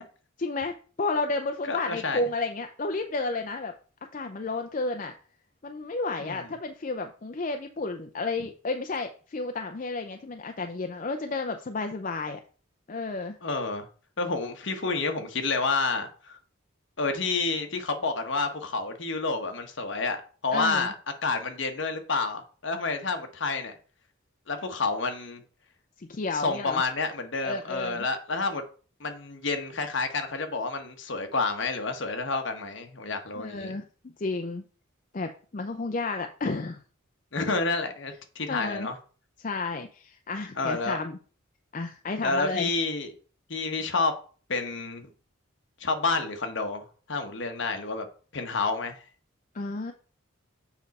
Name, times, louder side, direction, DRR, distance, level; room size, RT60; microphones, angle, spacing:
voice 1, 0.4-3.7 4.1-5.1 5.6-12.4 12.9-13.4 20.5-20.9 26.0-26.8 27.4-28.1 33.3-34.6 35.1-36.8 38.5-38.9 39.4-41.2 41.7-42.7 49.5-49.9, left 3 dB, 35° left, 5 dB, 0.4 m, -32 dB
voice 2, 1.7-2.2 6.2-6.5 13.4-13.9 14.2-16.4 17.0-20.9 21.2-23.7 24.5-25.4 26.3-28.6 29.0-33.8 37.3-39.0 40.6-41.0 42.2-43.1 43.5-44.1 44.5-45.1 45.8-48.1 48.3-49.0, left 3 dB, 60° left, 5 dB, 1.1 m, -29 dB
7.2 x 5.2 x 4.1 m, 0.40 s
head